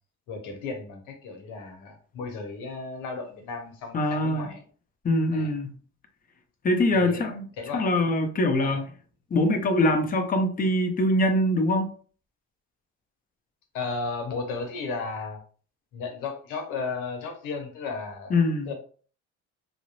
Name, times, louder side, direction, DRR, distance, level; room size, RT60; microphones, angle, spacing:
voice 1, 0.3-4.6 5.3-5.5 6.9-7.2 7.6-7.9 8.6-8.8 13.7-15.4 15.9-18.4 18.7-18.8, left 4 dB, 80° left, 0.8 m, -34 dB
voice 2, 3.9-4.5 5.0-5.7 6.6-7.5 7.7-8.9 9.3-11.9 18.3-18.7, left 1 dB, 30° left, 0.6 m, -23 dB
2.4 x 2.0 x 2.9 m
supercardioid pair, 90°, 31 cm